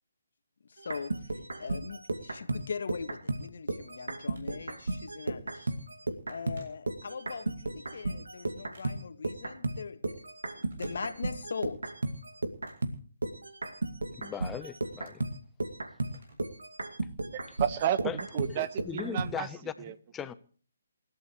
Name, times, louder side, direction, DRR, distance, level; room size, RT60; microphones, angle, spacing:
voice 1, 0.6-5.7 6.3-10.2 10.6-11.8, left 5 dB, 65° left, 2.0 m, -40 dB
sound 1, 0.8-6.6 6.9-19.3, right 2 dB, 90° right, 2.4 m, -35 dB
Telephone, 3.9-4.9 5.4-5.6 5.9-7.4 7.8-9.3 10.5-11.6 11.9-13.7 14.1-16.6 16.9-17.0 17.9-18.0, right 2 dB, 65° right, 7.5 m, -60 dB
voice 2, 14.2-15.2 18.0-20.3, left 8 dB, 10° left, 0.9 m, -39 dB
voice 3, 17.3-19.5 19.8-19.9, right 10 dB, 35° right, 1.2 m, -32 dB
28.0 x 14.0 x 3.2 m
hypercardioid pair, 150°, 0 cm